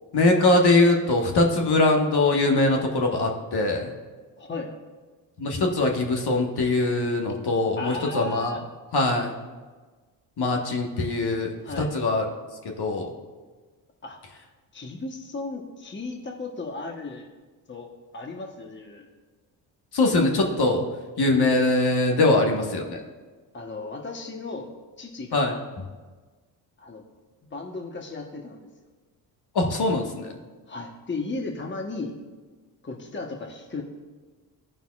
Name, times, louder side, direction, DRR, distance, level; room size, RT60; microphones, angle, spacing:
voice 1, 0.1-3.9 5.4-8.5 8.9-9.4 10.4-12.3 12.6-13.1 19.9-20.8 21.2-23.0 25.3-25.5 29.5-30.3, left 2 dB, 50° left, 2 dB, 1.5 m, -22 dB
voice 2, 4.4-4.8 7.8-8.6 11.6-11.9 14.0-14.2 14.7-17.3 17.7-17.9 18.1-19.1 22.2-22.3 23.5-24.7 25.0-25.6 26.8-27.0 27.5-28.7 30.7-32.2 32.8-33.8, left 3 dB, 25° left, 2 dB, 1.2 m, -35 dB
16.0 x 5.5 x 2.4 m, 1.4 s
supercardioid pair, 60°, 49 cm